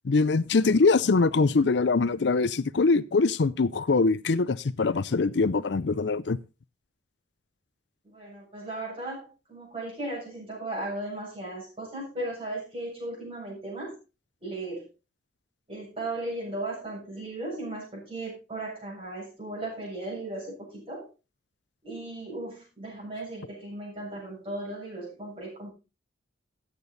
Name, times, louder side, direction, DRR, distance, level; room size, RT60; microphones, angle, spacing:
voice 1, 0.1-6.4, left 4 dB, 65° left, 0.5 m, -23 dB
voice 2, 8.0-14.0 14.4-14.8 15.7-21.1 21.8-25.7, right 2 dB, 30° right, 7.6 m, -36 dB
14.0 x 8.3 x 4.0 m
head